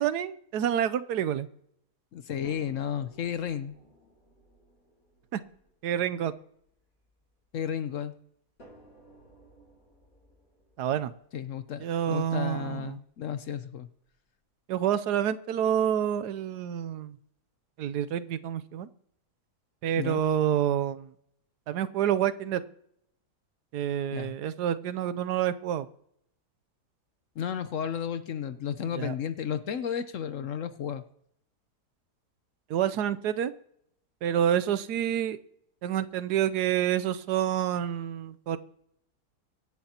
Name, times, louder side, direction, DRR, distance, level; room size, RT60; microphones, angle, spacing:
voice 1, 0.0-1.5 5.3-5.4 5.8-6.3 10.8-11.1 11.8-13.0 14.7-17.2 17.8-18.9 19.8-21.1 21.7-22.6 23.7-25.9 28.8-29.1 32.7-33.5 34.2-35.4 35.8-38.6, right 10 dB, 80° right, 13 dB, 1.2 m, -28 dB
voice 2, 2.1-3.7 7.5-8.1 11.3-13.9 20.0-20.2 24.1-24.3 27.4-31.0, left 8 dB, 60° left, 12 dB, 0.9 m, -33 dB
sound 1, 2.4-7.6 8.6-12.6 13.5-13.6 14.1-14.2, equal, 80° left, 6.3 m, -58 dB
24.0 x 10.5 x 2.9 m, 0.72 s
omnidirectional pair, 1.7 m